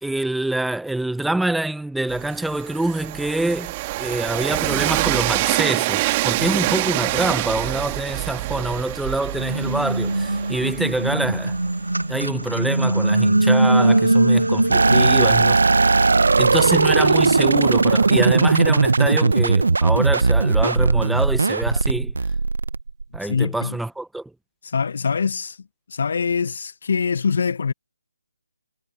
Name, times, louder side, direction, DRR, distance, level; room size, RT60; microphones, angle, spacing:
voice 1, 0.0-3.7 4.0-11.6 12.1-15.6 16.4-22.1 23.1-24.3, right 2 dB, ahead, 1.0 m, -25 dB
Train, 2.1-11.9, right 20 dB, 25° right, 2.1 m, -26 dB
sound 1, 6.3-8.6 9.1-20.4, right 2 dB, 90° right, 1.9 m, -23 dB
sound 2, 14.7-23.2, right 3 dB, 70° right, 1.5 m, -18 dB
voice 2, 14.9-15.5 23.2-23.8 24.6-25.6 25.9-27.7, left 5 dB, 55° left, 1.5 m, -24 dB
figure-of-eight pair, 150°, 0 cm